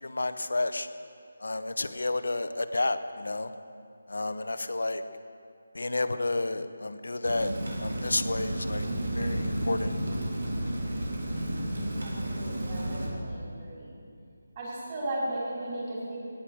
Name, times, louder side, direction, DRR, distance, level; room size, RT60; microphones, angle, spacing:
voice 1, 0.0-0.9 1.4-3.5 4.1-5.0 5.7-7.5 7.8-8.9 9.1-10.0, left 2 dB, 85° left, 10 dB, 0.9 m, -30 dB
Rain, 7.2-13.1, right 1 dB, 75° right, 3.3 m, -32 dB
voice 2, 12.0-13.9 14.5-16.2, right 1 dB, 25° right, -7 dB, 4.6 m, -36 dB
19.0 x 10.0 x 6.4 m, 2.4 s
figure-of-eight pair, 175°, 0 cm